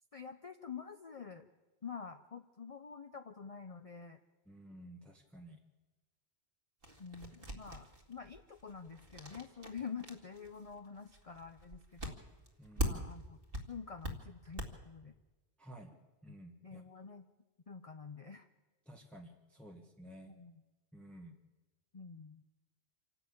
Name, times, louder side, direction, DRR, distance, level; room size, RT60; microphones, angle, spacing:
voice 1, 0.1-1.5 1.8-4.2 7.0-12.2 12.8-13.4 13.7-15.1 16.3-16.4 16.6-17.3 17.7-18.5 20.3-20.6 21.9-22.4, left 6 dB, 40° left, 7 dB, 0.7 m, -47 dB
voice 2, 4.5-5.6 12.6-13.0 15.6-16.0 16.2-16.8 18.9-20.3 20.9-21.4, right 1 dB, ahead, 1 dB, 1.4 m, -53 dB
sound 1, 6.8-13.2 13.5-14.7, equal, 60° right, 2.3 m, -41 dB
26.5 x 12.0 x 8.7 m, 1.1 s
omnidirectional pair, 1.1 m